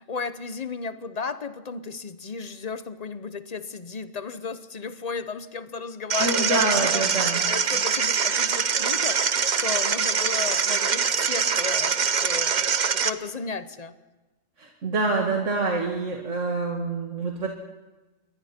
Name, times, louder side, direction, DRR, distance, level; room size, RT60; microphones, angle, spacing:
voice 1, 0.0-7.1 7.4-12.0 12.2-13.9, left 4 dB, 35° left, 12 dB, 0.9 m, -34 dB
sound 1, 6.1-13.1, right 6 dB, 40° right, 0.8 m, -24 dB
voice 2, 6.2-7.5 14.6-17.5, right 3 dB, 65° right, 0 dB, 2.4 m, -26 dB
28.0 x 22.5 x 4.4 m, 1.1 s
omnidirectional pair, 1.4 m